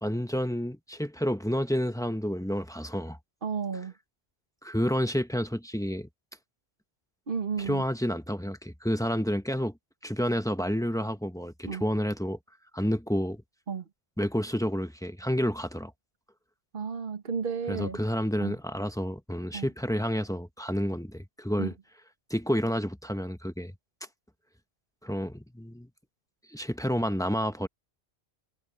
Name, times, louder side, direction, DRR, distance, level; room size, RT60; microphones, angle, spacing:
voice 1, 0.0-3.2 4.6-6.1 7.6-9.7 10.0-12.4 12.7-13.4 14.2-15.9 17.7-21.8 22.3-23.7 25.0-25.9 26.5-27.7, equal, 5° left, 0.9 m, -29 dB
voice 2, 3.4-3.9 7.3-7.8 11.6-11.8 13.7-13.8 16.7-18.0 18.4-18.5 19.5-19.7 21.6-21.7, right 6 dB, 55° right, 1.6 m, -32 dB
omnidirectional pair, 1.1 m